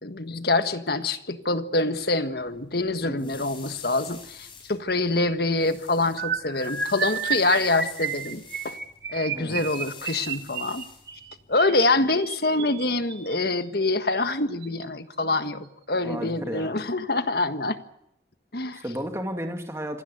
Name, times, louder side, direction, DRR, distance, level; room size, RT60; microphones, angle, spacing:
voice 1, 0.0-8.8 9.1-10.8 11.5-17.8 18.5-18.8, left 2 dB, 55° left, 10 dB, 1.6 m, -25 dB
sound 1, 2.4-11.6, left 5 dB, 25° left, 7.2 m, -48 dB
voice 2, 3.0-3.4 9.3-9.6 16.0-16.8 18.7-20.0, equal, 15° right, 4 dB, 2.3 m, -33 dB
sound 2, 6.2-13.3 14.1-14.3 14.6-14.8 15.1-15.3, right 6 dB, 55° right, 2.4 m, -32 dB
26.5 x 18.0 x 8.2 m, 0.78 s
head